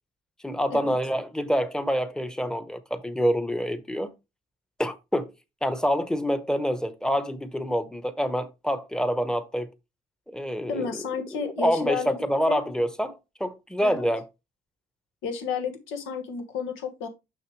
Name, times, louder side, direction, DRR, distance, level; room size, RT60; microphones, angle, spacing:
voice 1, 0.4-4.1 4.8-5.3 5.6-9.7 10.3-11.0 11.6-14.2, equal, 5° left, 0.9 m, -26 dB
voice 2, 10.7-12.2 12.5-12.6 13.8-14.1 15.2-17.1, left 5 dB, 90° left, 1.5 m, -31 dB
6.4 x 5.8 x 3.1 m
cardioid pair, 90°, 20 cm